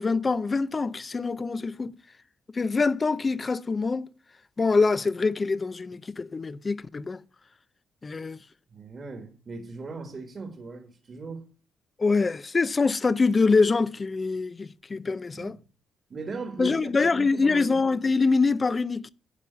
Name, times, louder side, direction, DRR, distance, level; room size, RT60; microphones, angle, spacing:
voice 1, 0.0-1.9 2.5-4.1 4.6-7.2 8.0-8.4 12.0-15.6 16.6-19.1, left 4 dB, 30° left, 0.5 m, -24 dB
voice 2, 8.7-11.5 15.3-15.6 16.1-17.9, right 4 dB, 40° right, 1.7 m, -38 dB
11.0 x 5.5 x 8.3 m
cardioid pair, 90°, 0 cm